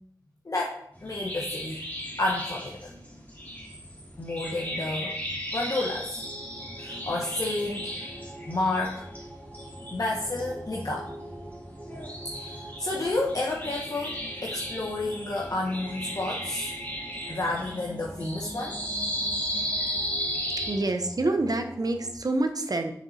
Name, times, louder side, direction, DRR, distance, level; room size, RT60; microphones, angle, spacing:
voice 1, 0.4-1.8 2.2-2.9 4.2-5.2 5.5-6.2 6.8-7.9 8.5-9.1 9.9-11.1 12.3-16.7 17.3-18.8, left 2 dB, 50° left, -2 dB, 1.1 m, -30 dB
sound 1, 1.0-20.8, equal, 20° left, 2.9 m, -36 dB
sound 2, 6.1-22.1, right 1 dB, 10° right, 1.4 m, -45 dB
voice 2, 20.7-22.9, right 2 dB, 55° right, 6 dB, 1.0 m, -27 dB
7.1 x 6.0 x 4.2 m, 0.68 s
wide cardioid pair, 65°, 8 cm